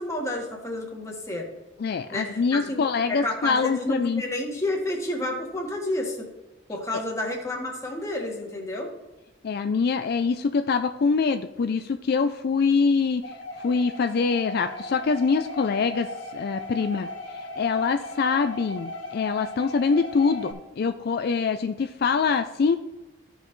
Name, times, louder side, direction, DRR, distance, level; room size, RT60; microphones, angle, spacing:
voice 1, 0.0-1.5 2.1-6.2 6.7-8.9, left 1 dB, 15° left, 0 dB, 1.6 m, -30 dB
voice 2, 1.8-4.2 9.4-13.2 13.6-16.1 16.3-17.1 17.6-22.8, left 5 dB, 55° left, 8 dB, 0.4 m, -24 dB
sound 1, 13.2-20.5, left 1 dB, 90° left, 1.4 m, -37 dB
14.5 x 5.5 x 3.1 m, 1.1 s
head